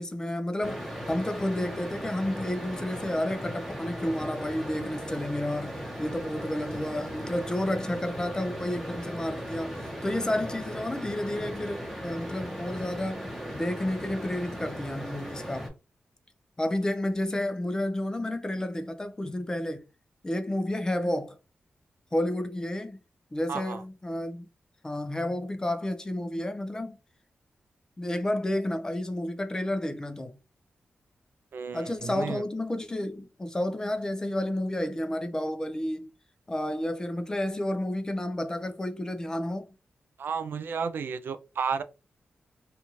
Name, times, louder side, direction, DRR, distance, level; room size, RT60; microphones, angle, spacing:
voice 1, 0.0-9.8 10.0-15.7 16.6-19.9 20.2-21.4 22.1-23.0 23.3-24.5 24.8-27.0 28.0-30.4 31.7-36.1 36.5-39.7, left 1 dB, 20° left, 0.4 m, -31 dB
sound 1, 0.6-15.7, equal, ahead, 1.1 m, -38 dB
voice 2, 23.5-23.8 31.5-32.4 40.2-41.8, right 6 dB, 70° right, 0.3 m, -32 dB
2.7 x 2.3 x 2.9 m
wide cardioid pair, 115°, 4 cm